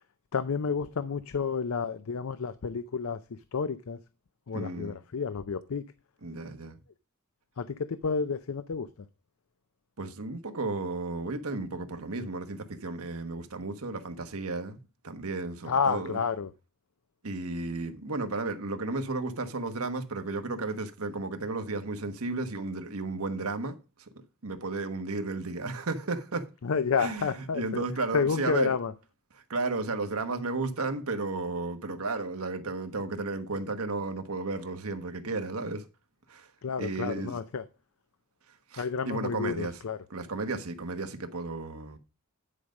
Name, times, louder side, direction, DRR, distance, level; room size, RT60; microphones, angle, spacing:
voice 1, 0.3-3.2 3.5-4.0 4.5-5.8 7.6-8.9 15.7-16.5 26.6-27.8 28.1-28.9 36.6-37.6 38.8-40.0, left 5 dB, 70° left, 0.5 m, -30 dB
voice 2, 4.5-5.0 6.2-6.8 10.0-14.8 15.0-16.2 17.2-24.1 24.4-26.5 27.0-28.8 29.3-35.9 36.3-36.5 36.8-37.4 38.5-39.8 40.1-42.0, right 3 dB, 80° right, 1.2 m, -33 dB
10.0 x 5.1 x 5.3 m
head